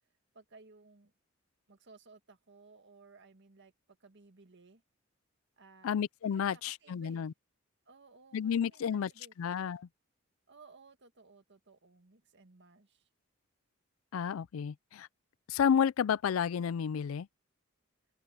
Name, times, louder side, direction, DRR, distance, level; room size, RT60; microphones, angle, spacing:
voice 1, 0.3-1.1 1.7-4.8 5.6-6.0 6.3-7.3 7.9-9.3 10.5-13.1, right 3 dB, 60° right, 1.8 m, -59 dB
voice 2, 5.8-7.3 8.3-9.1 9.4-9.9 14.1-15.1 15.5-17.3, left 7 dB, 85° left, 0.4 m, -31 dB
open air
head